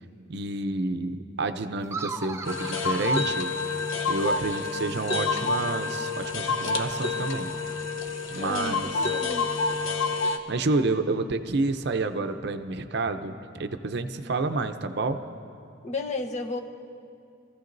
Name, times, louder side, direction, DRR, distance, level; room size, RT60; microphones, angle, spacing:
voice 1, 0.3-3.7 4.1-7.5 8.3-8.9 10.5-15.2, right 3 dB, 55° right, 8 dB, 0.6 m, -29 dB
sound 1, 1.8-4.3, right 4 dB, 15° right, 0.5 m, -38 dB
sound 2, 2.4-10.4, left 4 dB, 90° left, 0.9 m, -28 dB
voice 2, 8.4-9.5 15.8-16.6, left 3 dB, 35° left, 2 dB, 0.9 m, -33 dB
27.0 x 15.0 x 2.6 m, 2.4 s
head